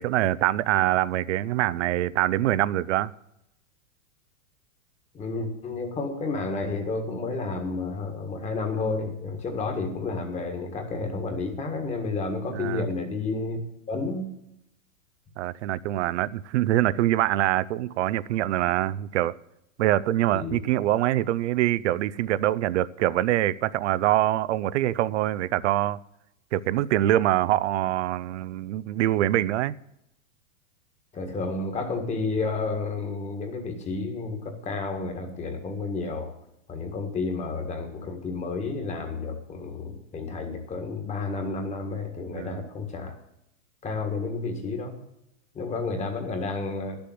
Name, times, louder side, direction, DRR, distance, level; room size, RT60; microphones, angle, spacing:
voice 1, 0.0-3.1 12.5-12.8 15.4-19.3 19.8-26.0 26.5-29.8 42.3-42.7, right 14 dB, 60° right, 0.6 m, -24 dB
voice 2, 5.1-13.6 13.9-14.3 20.3-20.6 31.1-36.3 36.7-43.1 43.8-44.9 45.5-47.0, left 3 dB, 15° left, 1.7 m, -31 dB
11.5 x 7.0 x 7.7 m
hypercardioid pair, 145°, 40 cm